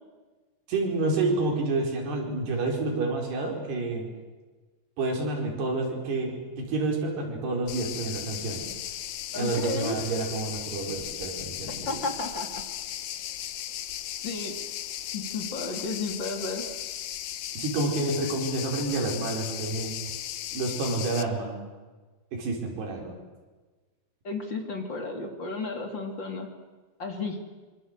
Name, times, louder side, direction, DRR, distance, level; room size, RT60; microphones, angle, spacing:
voice 1, 0.7-4.1 5.0-8.6 9.3-12.0 17.5-19.9 20.5-21.6 22.3-23.2, right 2 dB, 85° right, 1 dB, 6.7 m, -29 dB
sound 1, 7.7-21.2, left 11 dB, 70° left, 1.8 m, -36 dB
voice 2, 9.3-10.0 11.8-12.6 14.2-14.5 15.1-16.6 24.2-26.5 27.0-27.4, left 3 dB, 30° left, 4 dB, 3.0 m, -33 dB
25.5 x 25.0 x 8.1 m, 1.3 s
omnidirectional pair, 4.6 m